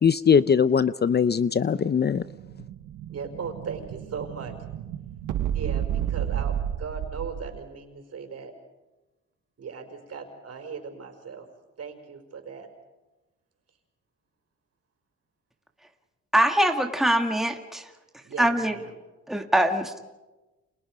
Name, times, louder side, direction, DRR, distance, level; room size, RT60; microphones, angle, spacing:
voice 1, 0.0-2.2, left 7 dB, 35° left, 15 dB, 0.7 m, -21 dB
Explosion, 1.5-7.6, right 10 dB, 80° right, 1.3 m, -32 dB
voice 2, 3.1-4.5 5.5-8.5 9.6-11.5 11.8-12.7 18.2-19.0, right 5 dB, 55° right, 5 dB, 5.3 m, -38 dB
voice 3, 16.3-17.9 18.4-18.7 19.3-20.0, right 1 dB, ahead, 4 dB, 2.0 m, -23 dB
29.5 x 27.0 x 5.1 m, 1.1 s
cardioid pair, 90°, 30 cm